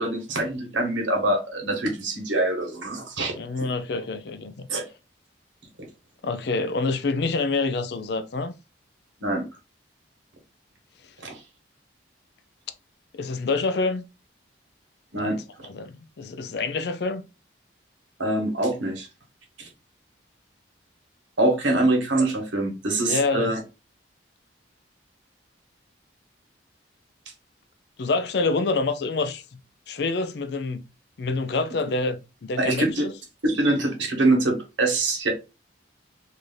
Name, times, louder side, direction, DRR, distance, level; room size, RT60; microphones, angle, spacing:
voice 1, 0.0-3.3 4.7-4.8 9.2-9.4 11.2-11.4 15.1-15.4 18.2-19.1 19.6-19.7 21.4-23.6 32.6-33.0 33.4-35.3, right 2 dB, 80° right, 1.3 m, -24 dB
voice 2, 3.3-4.7 6.2-8.5 13.1-14.0 15.2-17.2 23.0-23.5 28.0-29.6 29.9-30.8 31.2-33.1, left 3 dB, 60° left, 0.4 m, -27 dB
3.1 x 2.7 x 3.8 m
head